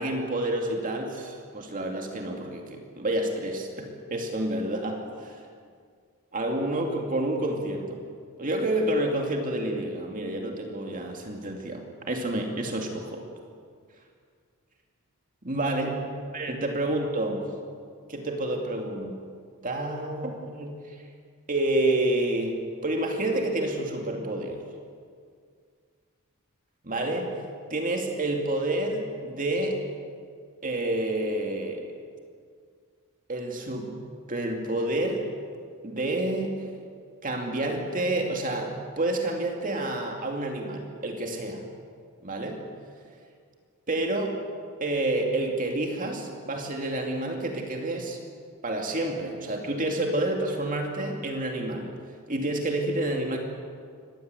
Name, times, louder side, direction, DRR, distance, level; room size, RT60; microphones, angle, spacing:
voice 1, 0.0-5.4 6.3-8.0 8.4-13.3 15.4-16.0 16.3-17.4 18.1-19.2 19.6-21.0 21.5-24.6 26.8-27.4 27.7-29.8 30.6-31.9 33.3-35.3 35.8-36.7 37.2-41.6 42.2-42.7 43.9-44.4 44.8-48.2 48.6-52.0 52.3-53.4, right 1 dB, 40° right, 2 dB, 2.5 m, -29 dB
24.5 x 19.5 x 8.1 m, 2.1 s
head